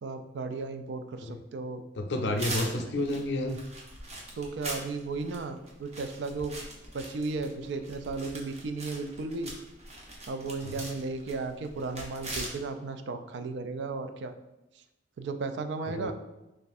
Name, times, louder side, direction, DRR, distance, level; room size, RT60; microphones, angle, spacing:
voice 1, 0.0-1.8 2.1-2.9 4.4-6.6 6.9-9.5 10.3-14.3 15.2-16.1, right 3 dB, 70° right, 8 dB, 0.4 m, -35 dB
voice 2, 2.0-3.6 10.6-10.8 15.9-16.1, left 2 dB, 70° left, 5 dB, 0.5 m, -31 dB
sound 1, 2.4-12.5, right 1 dB, 35° right, 0.8 m, -41 dB
3.2 x 2.5 x 4.1 m, 0.99 s
head